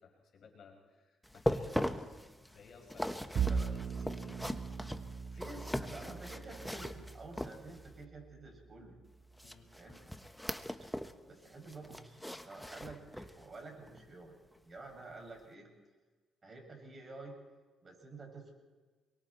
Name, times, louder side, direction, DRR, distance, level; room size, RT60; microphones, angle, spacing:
voice 1, 0.0-2.2 2.5-4.6 5.3-5.5 9.4-9.7, left 5 dB, 65° left, 1 dB, 5.6 m, -59 dB
sound 1, 1.2-8.0 9.4-11.2 11.5-13.5 13.9-14.0 14.6-14.7, equal, 5° left, 1.2 m, -40 dB
Bowed string instrument, 3.3-9.8, right 6 dB, 60° right, 1.2 m, -40 dB
voice 2, 5.3-9.0 9.6-10.1 11.3-14.4 14.6-15.7 16.4-17.5 17.8-18.5, right 3 dB, 35° right, 2 dB, 6.9 m, -50 dB
28.5 x 23.0 x 4.4 m, 1.4 s
cardioid pair, 90°, 0 cm